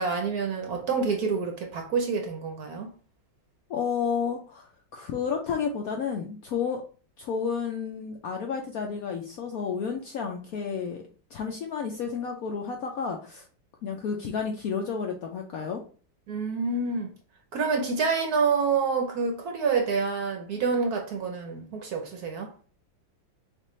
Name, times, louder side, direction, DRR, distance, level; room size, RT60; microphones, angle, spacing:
voice 1, 0.0-2.9 16.3-17.1 17.5-22.5, right 5 dB, 65° right, 1.0 m, -27 dB
voice 2, 3.7-6.8 7.2-11.0 11.3-13.4 13.8-15.8, left 6 dB, 70° left, 0.8 m, -31 dB
6.4 x 2.5 x 3.1 m
omnidirectional pair, 2.1 m